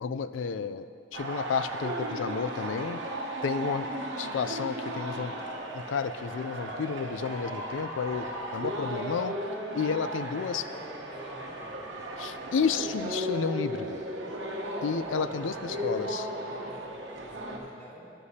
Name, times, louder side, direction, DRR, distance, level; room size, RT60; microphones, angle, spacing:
voice 1, 0.0-3.0 3.4-3.9 4.2-5.3 5.7-8.3 8.5-9.4 9.7-10.6 12.2-14.0 14.8-16.2, left 6 dB, 80° left, 13 dB, 0.4 m, -31 dB
sound 1, 1.1-17.6, right 1 dB, 75° right, 1.0 m, -36 dB
voice 2, 10.4-12.0 15.3-18.1, right 1 dB, 15° left, -6 dB, 1.9 m, -48 dB
12.5 x 10.0 x 2.8 m, 2.5 s
head